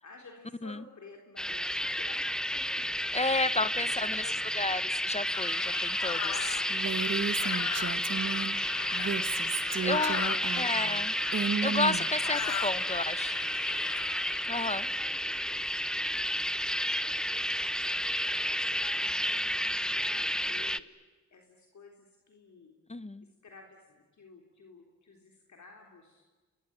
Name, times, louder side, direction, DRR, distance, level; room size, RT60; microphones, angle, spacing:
voice 1, 0.0-2.9 3.8-4.3 6.2-9.3 9.9-11.0 11.9-12.4 12.7-13.2 13.5-14.0 14.5-17.4 18.7-19.4 19.9-20.9 21.3-22.8 23.2-26.3, left 3 dB, 70° left, 2 dB, 3.8 m, -53 dB
sound 1, 1.4-20.8, equal, ahead, 0.9 m, -31 dB
voice 2, 3.1-4.2 4.5-6.3 9.8-10.2 10.6-11.1 11.6-13.4 14.5-14.9 22.9-23.2, left 2 dB, 20° left, 15 dB, 1.2 m, -32 dB
sound 2, 5.3-15.0, left 10 dB, 85° left, 1.0 m, -38 dB
Female speech woman speaking, 6.7-8.5 8.9-12.7, right 6 dB, 55° right, 1.6 m, -34 dB
29.0 x 22.0 x 9.0 m, 1.3 s
cardioid pair, 60°, 30 cm